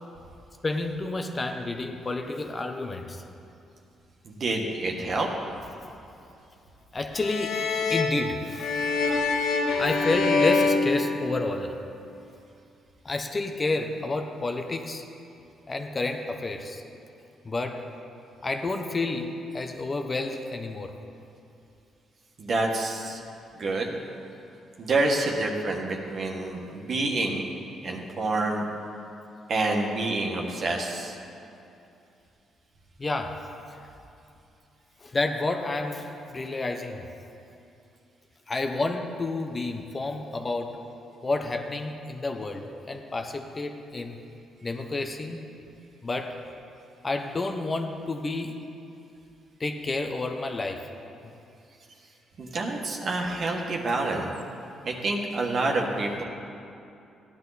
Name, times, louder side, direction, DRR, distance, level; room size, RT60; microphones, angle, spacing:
voice 1, 0.6-3.3 6.9-7.6 7.9-8.7 9.2-9.3 9.8-11.7 13.0-15.0 15.7-16.8 17.4-17.9 18.4-20.9 33.0-33.9 35.0-37.1 38.5-40.8 41.2-44.2 44.6-45.4 46.0-46.4 47.0-48.6 49.6-50.9, left 2 dB, 30° left, 5 dB, 0.9 m, -30 dB
voice 2, 4.2-5.3 22.4-23.2 23.5-23.9 24.8-27.4 27.8-28.6 29.5-31.2 52.4-54.3 54.8-56.2, right 2 dB, 55° right, 0 dB, 1.7 m, -27 dB
sound 1, 7.1-11.8, left 4 dB, 80° left, 1.1 m, -26 dB
15.0 x 10.5 x 4.2 m, 2.7 s
cardioid pair, 90°, 0 cm